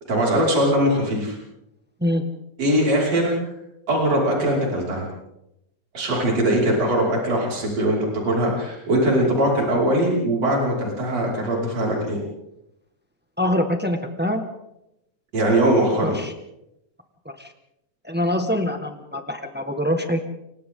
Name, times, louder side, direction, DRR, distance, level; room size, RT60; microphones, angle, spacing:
voice 1, 0.1-1.4 2.6-3.3 3.9-5.1 5.9-12.2 15.3-16.2, right 1 dB, 55° right, -3 dB, 6.6 m, -21 dB
voice 2, 13.4-14.4 16.0-16.3 17.4-17.5 18.0-20.3, left 1 dB, 10° right, 5 dB, 0.6 m, -24 dB
29.5 x 25.0 x 3.9 m, 0.85 s
omnidirectional pair, 3.5 m